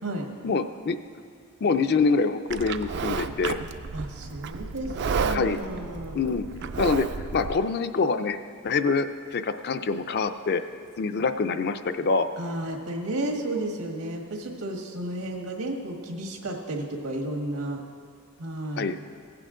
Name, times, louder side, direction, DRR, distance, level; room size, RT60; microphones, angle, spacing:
voice 1, 0.4-1.0 1.6-3.6 5.3-5.6 6.1-6.4 6.8-7.1 7.3-8.4 8.6-10.6 11.0-12.3 18.8-19.0, left 4 dB, 50° left, 9 dB, 0.4 m, -25 dB
Livestock farm animals working animals, 2.5-7.6, right 5 dB, 55° right, 0.4 m, -32 dB
voice 2, 3.9-6.2 12.4-17.8 18.4-18.9, right 1 dB, 90° right, 2 dB, 1.6 m, -32 dB
17.5 x 7.7 x 3.8 m, 2.1 s
head